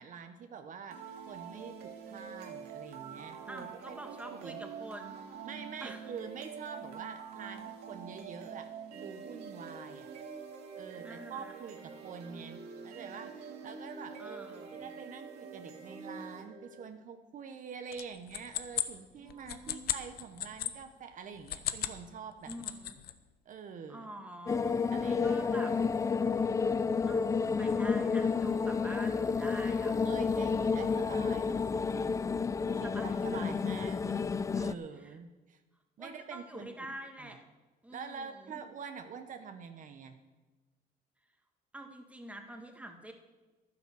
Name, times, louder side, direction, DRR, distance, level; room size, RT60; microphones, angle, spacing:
voice 1, 0.0-4.6 5.4-10.1 10.7-22.6 23.4-24.1 24.9-25.4 30.0-32.4 32.7-35.6 36.0-36.7 37.2-37.4 37.9-40.2, right 6 dB, 50° right, 7 dB, 1.0 m, -46 dB
sound 1, 0.9-16.9, right 6 dB, 75° right, 2.2 m, -46 dB
voice 2, 3.5-5.2 5.8-6.1 11.0-11.5 14.2-14.9 19.2-19.9 22.5-23.0 23.9-25.7 27.1-29.9 32.7-33.5 35.0-35.2 36.0-37.4 37.8-38.6 41.7-43.1, right 1 dB, 10° right, 4 dB, 1.6 m, -46 dB
sound 2, 17.9-20.7 21.4-22.0 22.3-23.1, left 12 dB, 65° left, 0.8 m, -36 dB
sound 3, 24.5-34.7, left 5 dB, 20° left, 0.3 m, -30 dB
11.0 x 9.4 x 6.9 m, 1.2 s
cardioid pair, 110°, 17 cm